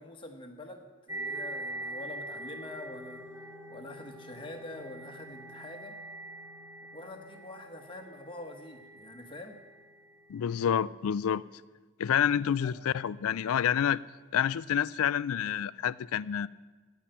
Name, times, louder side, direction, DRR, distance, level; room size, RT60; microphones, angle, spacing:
voice 1, 0.0-6.0 6.9-9.6 12.6-12.7, left 2 dB, 25° left, 1.3 m, -45 dB
sound 1, 1.1-10.6, right 1 dB, 15° right, 1.4 m, -43 dB
voice 2, 10.3-11.4 12.0-14.0 14.3-16.5, left 9 dB, 75° left, 0.4 m, -28 dB
17.0 x 5.7 x 8.8 m
head